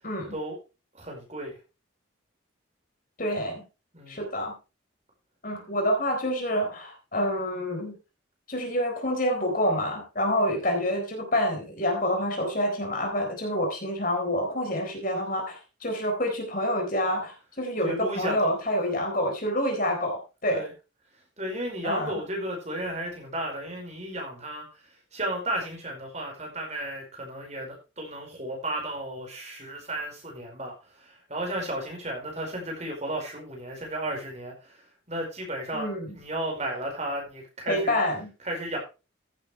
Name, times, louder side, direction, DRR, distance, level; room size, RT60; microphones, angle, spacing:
voice 1, 0.0-0.4 3.2-3.6 4.1-4.5 5.4-7.9 8.5-20.6 21.8-22.2 35.7-36.1 37.7-38.3, equal, 45° left, 3 dB, 4.0 m, -27 dB
voice 2, 0.9-1.6 3.9-4.2 17.8-18.5 20.5-20.7 21.4-38.0 38.4-38.8, right 1 dB, 35° right, 1 dB, 4.9 m, -34 dB
15.0 x 8.9 x 3.2 m, 0.30 s
head